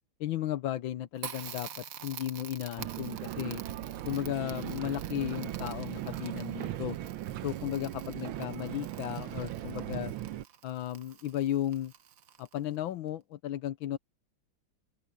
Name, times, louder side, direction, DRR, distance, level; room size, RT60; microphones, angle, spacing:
voice 1, 0.2-3.6 4.0-7.0 7.4-10.1 10.6-11.9 12.4-14.0, left 12 dB, 80° left, 1.6 m, -35 dB
Crackle, 1.2-12.8, right 8 dB, 50° right, 1.2 m, -48 dB
sound 1, 2.8-10.4, right 13 dB, 85° right, 1.6 m, -38 dB
open air
omnidirectional pair, 2.2 m